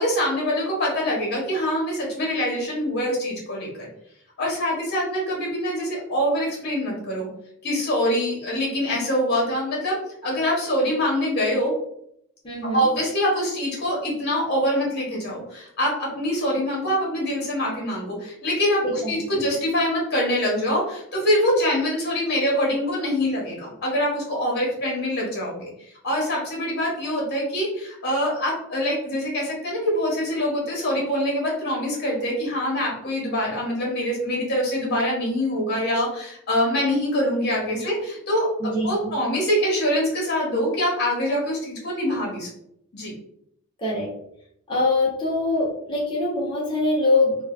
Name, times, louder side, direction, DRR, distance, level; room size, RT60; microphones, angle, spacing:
voice 1, 0.0-3.9 4.4-7.3 7.6-11.7 12.7-38.5 38.8-42.5 42.9-43.1, equal, 50° left, -2 dB, 1.4 m, -24 dB
voice 2, 12.4-12.9 18.8-19.2 37.8-37.9 38.6-39.1 43.8-44.1 44.7-47.4, left 2 dB, 25° left, -5 dB, 0.9 m, -23 dB
3.2 x 2.4 x 3.2 m, 0.73 s
head